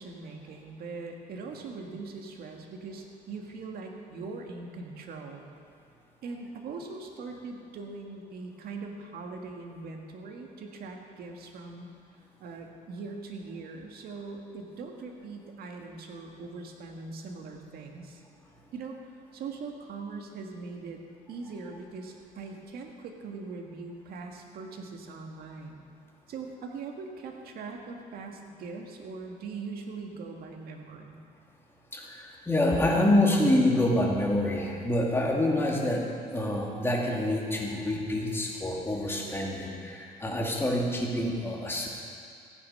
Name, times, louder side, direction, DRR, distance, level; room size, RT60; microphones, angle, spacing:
voice 1, 0.0-5.5 6.2-11.9 12.4-18.2 18.7-19.0 19.3-21.0 21.3-25.9 26.3-31.2, right 4 dB, 65° right, 2 dB, 1.7 m, -41 dB
voice 2, 31.9-36.1 36.3-41.9, left 1 dB, 15° left, -2 dB, 2.3 m, -26 dB
15.0 x 9.6 x 5.6 m, 2.3 s
cardioid pair, 110°, 17 cm